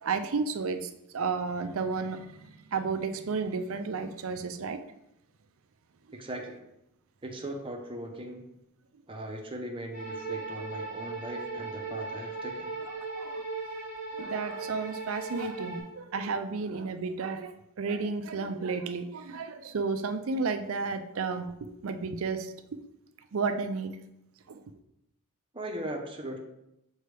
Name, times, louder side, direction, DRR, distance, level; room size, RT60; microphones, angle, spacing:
voice 1, 0.0-2.4 2.7-4.8 6.1-6.2 9.2-9.3 12.8-13.4 14.2-22.8 23.3-24.0 24.5-24.6, right 4 dB, 65° right, 0.5 m, -32 dB
voice 2, 6.1-6.6 7.2-8.4 9.1-12.7 25.5-26.4, right 1 dB, 25° right, 0.9 m, -39 dB
sound 1, 9.9-15.8, right 3 dB, 45° left, 2.1 m, -37 dB
6.7 x 4.5 x 3.3 m
head